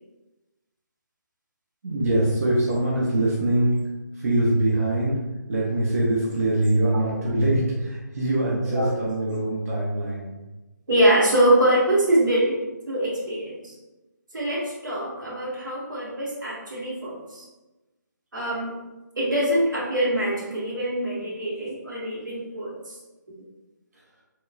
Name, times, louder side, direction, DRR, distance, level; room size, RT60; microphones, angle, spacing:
voice 1, 1.8-3.8 4.2-5.2 5.5-10.3, right 1 dB, 50° right, -5 dB, 0.6 m, -23 dB
voice 2, 10.9-13.7 14.3-17.4 18.3-18.8 19.2-22.9, right 1 dB, 85° right, -5 dB, 1.1 m, -24 dB
3.0 x 2.2 x 2.3 m, 1.1 s
figure-of-eight pair, 165°, 10 cm